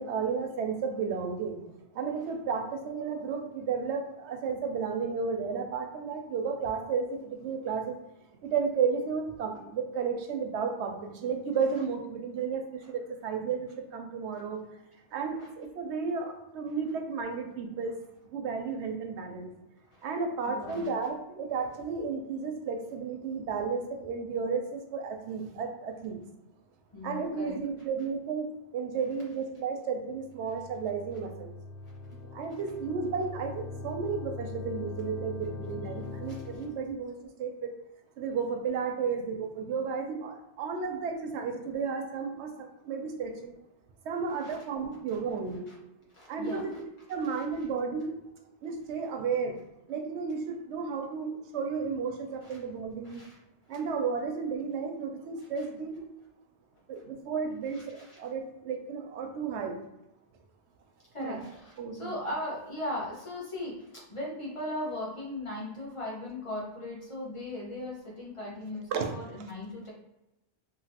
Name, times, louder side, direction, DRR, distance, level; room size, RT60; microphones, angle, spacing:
voice 1, 0.0-1.6 1.9-8.0 8.4-14.6 15.1-17.9 18.3-19.5 20.0-26.2 27.0-31.5 32.3-37.7 38.2-43.5 44.0-45.7 46.3-46.7 47.1-48.1 48.6-49.6 49.9-53.2 53.7-56.1 56.9-59.8 61.2-61.4 61.8-62.2 68.9-69.1, right 5 dB, 85° right, 5 dB, 0.9 m, -33 dB
voice 2, 20.4-20.9 26.9-27.6 44.4-44.6 45.1-45.2 45.7-45.8 46.1-46.8 47.1-47.4 52.4-52.6 53.0-53.4 53.7-53.8 55.6-55.7 57.7-58.2 61.1-69.9, left 1 dB, 30° left, -5 dB, 1.1 m, -38 dB
sound 1, 30.1-36.9, left 3 dB, 70° left, 0.8 m, -42 dB
2.9 x 2.7 x 2.8 m, 0.91 s
omnidirectional pair, 1.1 m